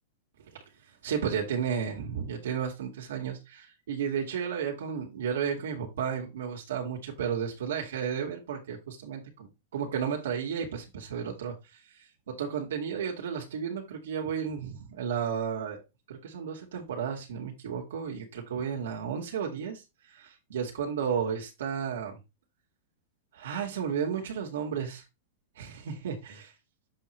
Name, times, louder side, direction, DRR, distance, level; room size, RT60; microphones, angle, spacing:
voice 1, 1.0-11.5 12.0-15.8 16.1-19.8 20.1-22.2 23.3-25.0 25.6-26.1, right 7 dB, 90° right, 0 dB, 2.1 m, -33 dB
7.6 x 4.7 x 3.3 m, 0.24 s
supercardioid pair, 165°, 0 cm